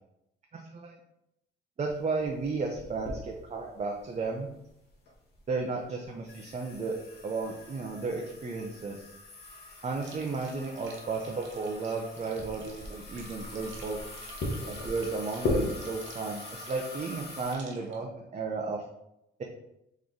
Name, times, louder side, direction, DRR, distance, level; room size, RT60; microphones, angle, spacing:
voice 1, 0.5-1.0 1.8-4.5 5.5-7.0 7.2-9.1 9.8-14.0 14.6-18.8, right 4 dB, 35° right, 1 dB, 0.6 m, -34 dB
sound 1, 1.9-17.6, left 2 dB, 55° left, 1.1 m, -39 dB
sound 2, 10.0-18.0, right 3 dB, 70° right, 0.9 m, -53 dB
3.9 x 3.1 x 3.7 m, 0.84 s
cardioid pair, 90°, 20 cm